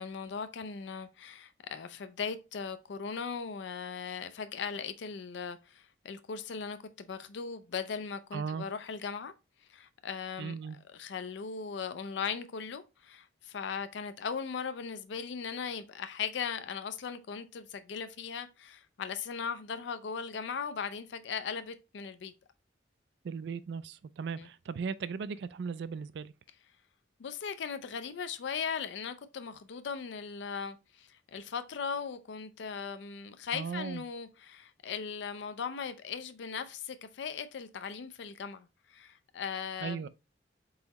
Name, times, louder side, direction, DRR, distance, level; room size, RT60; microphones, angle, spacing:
voice 1, 0.0-9.3 9.7-10.6 10.9-22.3 24.4-24.5 27.2-40.0, left 6 dB, 70° left, 0.4 m, -38 dB
voice 2, 8.3-8.7 10.4-10.8 23.2-26.3 33.5-34.0 39.8-40.1, right 5 dB, 65° right, 0.3 m, -37 dB
4.0 x 3.8 x 2.9 m
head